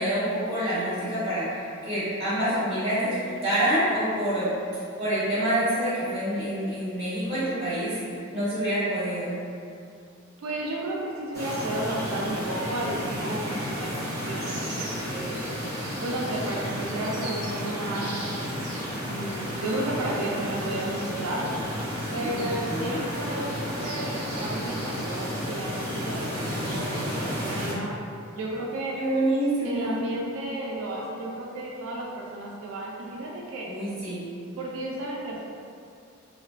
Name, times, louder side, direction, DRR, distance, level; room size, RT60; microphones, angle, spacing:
voice 1, 0.0-4.5 5.0-7.9 8.3-9.4 22.4-22.9 29.0-30.0 33.6-34.2, right 1 dB, 25° right, -16 dB, 1.2 m, -27 dB
voice 2, 10.4-15.4 16.0-18.1 19.0-21.4 22.1-27.9 28.4-29.0 29.6-33.7 34.6-35.4, right 1 dB, 80° right, -3 dB, 0.3 m, -33 dB
sound 1, 11.3-27.7, equal, 15° left, 0.8 m, -32 dB
2.5 x 2.2 x 2.4 m, 2.4 s
head